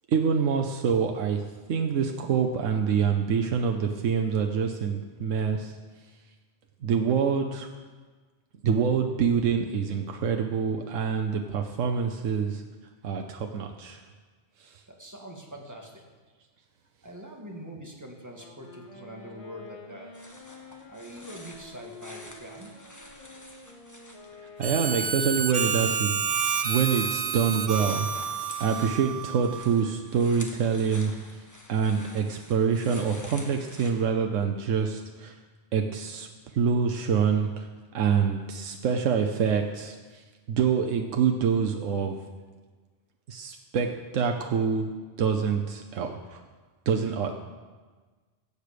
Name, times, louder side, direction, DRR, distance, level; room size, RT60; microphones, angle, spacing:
voice 1, 0.1-1.4 1.7-5.7 6.8-7.7 8.6-12.6 13.0-14.0 14.6-14.8 24.6-26.2 26.6-28.1 28.6-31.1 31.7-35.3 35.7-36.3 36.5-37.7 37.9-40.2 40.5-42.2 43.3-44.9 45.2-46.4 46.9-47.4, right 6 dB, 90° right, 4 dB, 1.1 m, -26 dB
voice 2, 14.9-16.0 17.0-20.1 20.9-22.7, equal, 15° right, 0 dB, 1.7 m, -43 dB
Wind instrument woodwind instrument, 18.3-26.2, left 3 dB, 30° left, 1.0 m, -49 dB
sound 1, 20.1-25.0 25.3-33.9, left 1 dB, 15° left, 1.3 m, -48 dB
Harmonica, 24.6-29.8, right 6 dB, 45° right, 0.5 m, -29 dB
15.5 x 8.2 x 5.0 m, 1.4 s
omnidirectional pair, 1.3 m